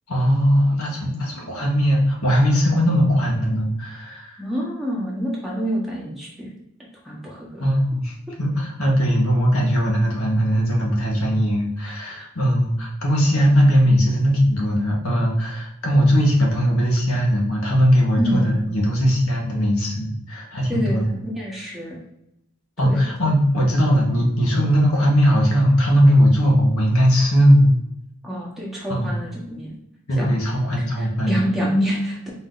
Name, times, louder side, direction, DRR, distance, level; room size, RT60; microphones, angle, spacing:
voice 1, 0.1-4.4 7.6-21.0 22.8-27.7 28.9-29.1 30.1-31.4, equal, 90° left, -2 dB, 1.3 m, -19 dB
voice 2, 4.4-6.5 7.0-7.6 11.8-11.9 18.2-18.6 20.7-22.0 22.8-23.0 28.2-29.7 30.1-30.3 30.7-32.3, equal, ahead, -5 dB, 1.0 m, -27 dB
4.2 x 2.7 x 3.9 m, 0.82 s
head